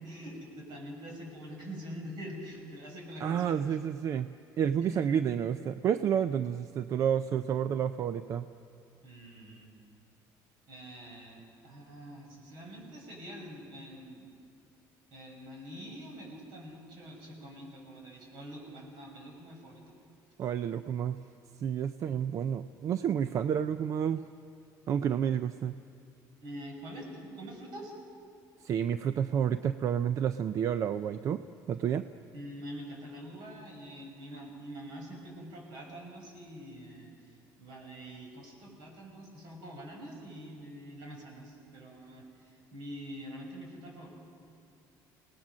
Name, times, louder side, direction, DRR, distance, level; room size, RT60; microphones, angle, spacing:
voice 1, 0.0-3.5 4.8-5.0 9.0-9.7 10.7-14.3 15.1-19.9 26.4-28.0 32.3-44.1, equal, 65° right, 0 dB, 6.4 m, -45 dB
voice 2, 3.2-8.5 20.4-21.2 21.6-24.2 24.9-25.8 28.6-31.4 31.7-32.1, right 8 dB, 40° right, 12 dB, 0.5 m, -30 dB
29.5 x 18.5 x 6.2 m, 2.4 s
cardioid pair, 155°, 8 cm